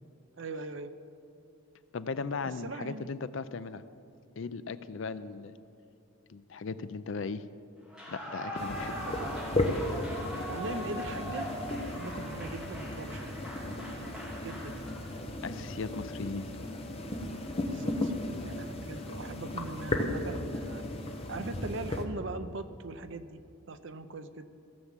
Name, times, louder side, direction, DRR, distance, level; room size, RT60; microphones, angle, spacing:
voice 1, 0.4-0.9 2.4-3.1 8.9-9.4 10.5-11.5 11.9-13.4 14.4-14.9 17.7-18.1 18.5-20.8 21.3-23.4 23.7-24.5, right 2 dB, 55° right, 10 dB, 0.6 m, -40 dB
voice 2, 1.9-3.8 4.4-5.6 6.3-7.5 8.1-8.9 15.4-16.5, left 4 dB, 60° left, 13 dB, 0.4 m, -37 dB
Clapping / Cheering / Applause, 7.8-15.3, equal, 5° right, 3.0 m, -41 dB
sound 1, 8.6-22.0, left 1 dB, 25° left, 0.9 m, -35 dB
16.5 x 7.3 x 7.4 m, 2.5 s
head